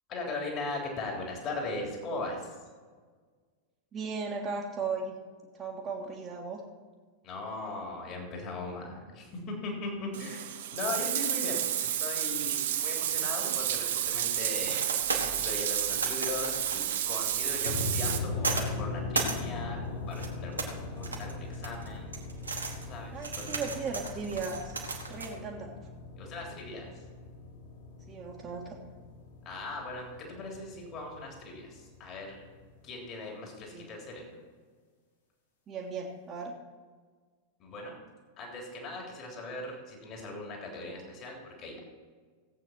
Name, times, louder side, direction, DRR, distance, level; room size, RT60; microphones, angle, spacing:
voice 1, 0.1-2.7 7.2-14.8 15.2-22.1 22.8-23.5 26.2-27.0 29.4-32.4 32.8-34.3 37.6-38.0 38.4-41.8, left 2 dB, 35° left, 0 dB, 3.3 m, -39 dB
voice 2, 3.9-5.2 5.5-6.6 23.1-24.7 25.1-25.7 28.1-28.8 33.7-33.9 35.7-36.5, right 4 dB, 25° right, -5 dB, 1.7 m, -36 dB
Bathtub (filling or washing), 10.1-18.2, right 11 dB, 55° right, 1.0 m, -31 dB
sound 1, 13.6-25.3, right 4 dB, 75° right, 1.6 m, -37 dB
sound 2, 17.6-32.8, left 3 dB, 70° left, 2.6 m, -40 dB
17.0 x 8.3 x 4.5 m, 1.5 s
figure-of-eight pair, 90°, 0 cm